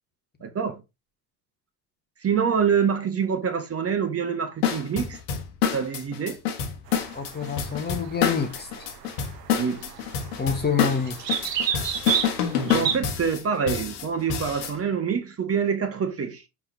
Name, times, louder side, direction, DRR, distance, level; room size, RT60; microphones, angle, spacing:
voice 1, 0.4-0.8 2.2-5.2 5.7-6.4 9.6-9.9 12.7-16.5, right 6 dB, 30° right, 1.3 m, -26 dB
sound 1, 4.6-14.7, left 8 dB, 70° left, 1.4 m, -27 dB
sound 2, 6.9-12.9, right 8 dB, 85° right, 1.3 m, -32 dB
voice 2, 7.1-8.9 10.4-11.3, left 6 dB, 20° left, 1.1 m, -28 dB
5.6 x 4.8 x 3.4 m
figure-of-eight pair, 65°, 48 cm